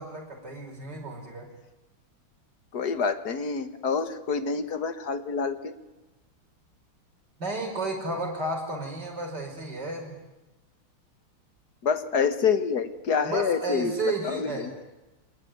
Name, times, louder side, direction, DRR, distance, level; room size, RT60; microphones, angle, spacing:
voice 1, 0.0-1.5 7.4-10.2 13.2-14.7, right 2 dB, 50° right, 2 dB, 6.0 m, -32 dB
voice 2, 2.7-5.7 11.8-13.9 14.2-14.7, left 6 dB, 50° left, 10 dB, 1.8 m, -27 dB
26.0 x 20.0 x 9.5 m, 1.1 s
omnidirectional pair, 2.3 m